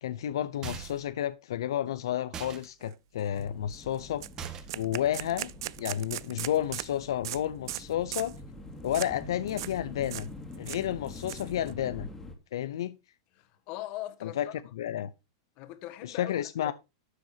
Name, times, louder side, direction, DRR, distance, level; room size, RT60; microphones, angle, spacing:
voice 1, 0.0-4.2 4.7-5.5 5.8-8.3 8.8-10.3 10.6-12.1 12.5-13.0 14.2-14.5 14.7-15.1 16.0-16.7, left 11 dB, 80° left, 0.6 m, -31 dB
bash plastic bike helmet hit with metal pipe window rattle, 0.6-1.1 2.3-2.7 4.4-4.9, right 7 dB, 25° right, 1.7 m, -40 dB
sound 1, 2.8-2.9 3.3-3.4 3.7-3.8 4.2-6.9 7.2-7.4 7.7-7.8 8.1-8.4 8.9-9.1 9.5-9.7 10.0-10.3 10.5-11.7, right 15 dB, 65° right, 0.5 m, -38 dB
sound 2, 3.4-12.4, left 2 dB, 15° left, 2.3 m, -45 dB
voice 2, 13.3-14.5 15.6-16.3 16.6-16.7, left 15 dB, 45° left, 1.4 m, -40 dB
12.5 x 7.8 x 2.8 m
supercardioid pair, 135°, 2 cm